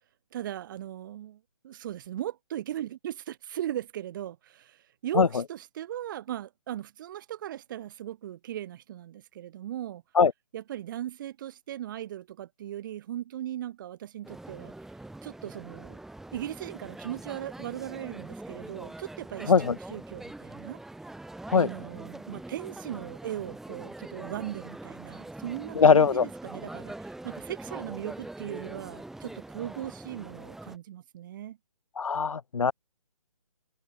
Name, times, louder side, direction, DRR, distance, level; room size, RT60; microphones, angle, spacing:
voice 1, 0.3-10.0 10.5-14.7 15.2-16.0 16.3-20.8 21.5-31.6, right 12 dB, 35° right, 7.1 m, -38 dB
sound 1, 14.2-30.8, right 2 dB, ahead, 3.2 m, -43 dB
voice 2, 25.8-26.3 32.0-32.7, left 5 dB, 65° left, 0.9 m, -20 dB
figure-of-eight pair, 145°, 19 cm